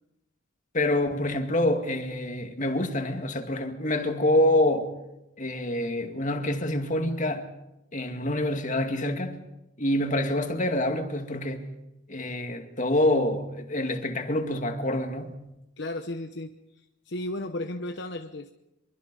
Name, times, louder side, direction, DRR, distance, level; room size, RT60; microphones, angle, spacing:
voice 1, 0.7-4.9 5.4-7.4 7.9-9.4 9.8-11.6 12.1-15.3, left 1 dB, 40° left, 2.2 m, -26 dB
voice 2, 15.8-18.5, left 1 dB, 60° left, 1.0 m, -35 dB
24.5 x 23.5 x 5.5 m
head